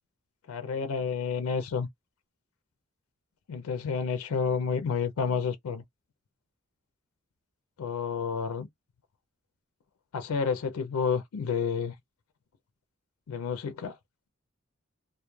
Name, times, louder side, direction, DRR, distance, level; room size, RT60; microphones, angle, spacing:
voice 1, 0.5-1.9 3.5-5.8 7.8-8.7 10.1-11.9 13.3-14.0, left 6 dB, 90° left, 0.4 m, -30 dB
2.2 x 2.0 x 3.0 m
head